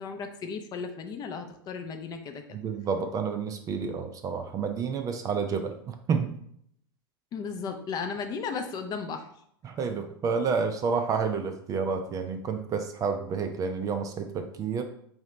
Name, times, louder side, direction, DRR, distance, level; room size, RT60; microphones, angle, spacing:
voice 1, 0.0-2.6 7.3-9.3, left 5 dB, 30° left, 5 dB, 0.6 m, -35 dB
voice 2, 2.5-6.4 9.6-14.8, right 5 dB, 25° right, 7 dB, 0.5 m, -30 dB
4.7 x 2.8 x 3.2 m, 0.69 s
hypercardioid pair, 100°, 13 cm